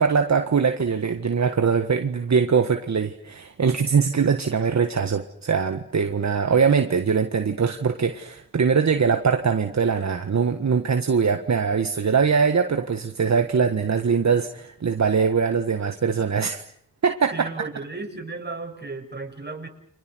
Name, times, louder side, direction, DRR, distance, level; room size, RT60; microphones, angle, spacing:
voice 1, 0.0-16.6 17.0-17.5, right 6 dB, 60° right, 6 dB, 1.7 m, -22 dB
voice 2, 17.3-19.7, right 3 dB, 35° right, 2 dB, 7.1 m, -34 dB
30.0 x 26.0 x 6.4 m, 0.66 s
cardioid pair, 60°, 31 cm